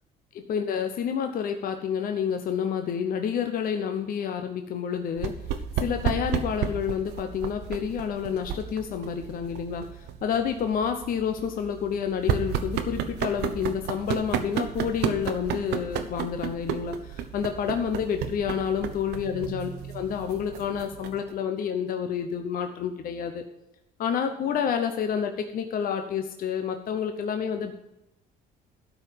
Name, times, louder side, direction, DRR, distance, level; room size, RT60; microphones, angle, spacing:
voice 1, 0.3-5.3 5.8-23.4 24.0-27.7, left 7 dB, 60° left, 6 dB, 0.9 m, -29 dB
sound 1, 5.2-21.3, right 8 dB, 80° right, 0.9 m, -33 dB
12.5 x 4.7 x 7.3 m, 0.89 s
cardioid pair, 110°, 17 cm